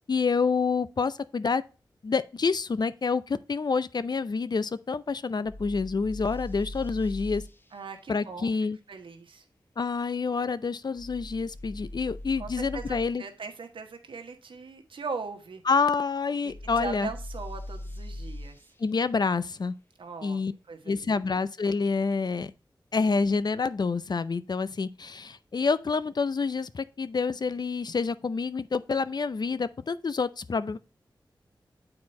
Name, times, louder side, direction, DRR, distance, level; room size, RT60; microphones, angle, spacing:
voice 1, 0.1-1.6 2.0-7.4 8.1-8.8 9.8-13.2 15.7-17.1 18.8-19.7 20.2-20.5 20.9-22.5 22.9-30.8, left 4 dB, 55° left, 0.5 m, -28 dB
sound 1, 5.4-7.5 11.0-13.1 16.5-18.6, left 1 dB, 25° left, 0.9 m, -40 dB
voice 2, 7.7-8.5 8.9-9.4 12.4-15.6 16.4-18.6 20.0-20.4 20.7-21.2, right 4 dB, 85° right, 1.2 m, -39 dB
7.6 x 4.4 x 4.2 m
cardioid pair, 45°, 8 cm